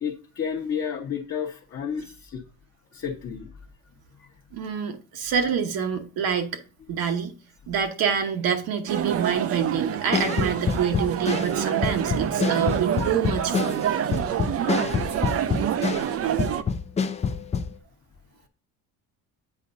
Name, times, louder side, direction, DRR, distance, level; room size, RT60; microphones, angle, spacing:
voice 1, 0.0-2.4 2.9-3.5 15.2-15.3, left 7 dB, 35° left, 1.0 m, -31 dB
voice 2, 4.5-6.6 6.9-7.3 7.7-13.9 15.1-15.3, right 7 dB, 65° right, 1.1 m, -27 dB
sound 1, 8.9-16.6, right 9 dB, 40° right, 0.5 m, -27 dB
sound 2, 10.1-16.1 16.4-17.7, left 6 dB, 20° left, 0.4 m, -27 dB
8.3 x 4.5 x 2.6 m
cardioid pair, 130°, 39 cm